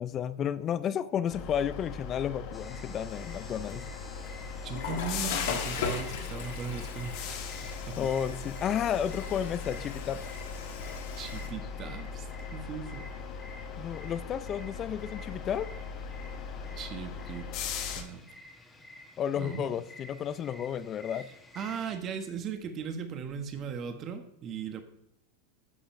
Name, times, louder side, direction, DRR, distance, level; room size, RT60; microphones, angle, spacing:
voice 1, 0.0-3.9 8.0-10.2 13.8-15.7 19.2-21.3, left 9 dB, 35° left, 15 dB, 0.5 m, -32 dB
sound 1, 1.3-18.0, left 5 dB, 50° left, 1.0 m, -39 dB
sound 2, 2.5-22.0, left 2 dB, 10° left, 1.1 m, -52 dB
Water / Toilet flush, 3.1-11.5, left 5 dB, 70° left, 1.4 m, -39 dB
voice 2, 4.6-8.0 11.2-13.1 16.7-17.5 17.9-18.2 19.3-19.7 21.5-24.8, right 6 dB, 40° right, 8 dB, 1.0 m, -38 dB
9.7 x 7.0 x 2.6 m, 0.80 s
hypercardioid pair, 100°, 0 cm